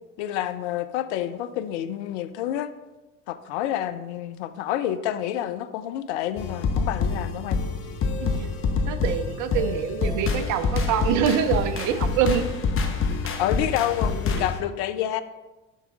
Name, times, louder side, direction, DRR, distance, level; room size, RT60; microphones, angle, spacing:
voice 1, 0.2-2.7 3.3-7.6 13.4-15.2, left 11 dB, 65° left, 12 dB, 0.5 m, -28 dB
sound 1, 6.4-14.6, left 4 dB, 35° left, 0.8 m, -26 dB
voice 2, 8.9-12.4 14.4-14.5, right 8 dB, 50° right, 10 dB, 0.6 m, -25 dB
5.7 x 5.7 x 3.5 m, 1.1 s
figure-of-eight pair, 60°, 38 cm